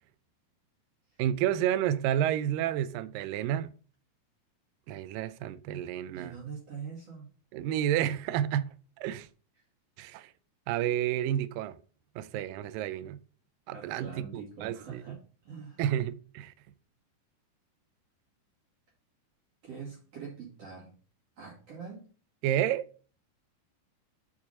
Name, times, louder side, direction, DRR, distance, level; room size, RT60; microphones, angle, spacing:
voice 1, 1.2-3.7 4.9-6.3 7.5-8.7 9.0-9.3 10.0-10.3 10.7-11.8 12.2-13.2 13.7-15.0 15.8-16.5 22.4-22.9, right 11 dB, 80° right, 2.1 m, -30 dB
voice 2, 6.1-7.3 13.7-15.8 19.6-20.9 21.4-22.0, right 6 dB, 45° right, 2.7 m, -44 dB
6.0 x 4.9 x 5.4 m
omnidirectional pair, 4.3 m